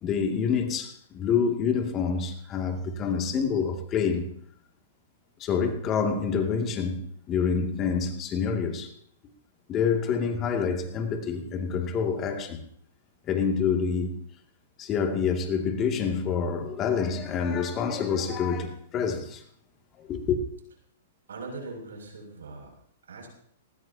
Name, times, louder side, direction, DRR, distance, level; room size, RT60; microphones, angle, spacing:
voice 1, 0.0-4.3 5.4-8.9 9.7-12.6 13.2-14.2 14.8-19.4 20.0-20.4, left 6 dB, 30° left, 2.5 m, -27 dB
voice 2, 21.3-22.7 23.0-23.3, right 3 dB, 85° right, 6.8 m, -40 dB
20.0 x 19.0 x 2.9 m
hypercardioid pair, 130°, 0 cm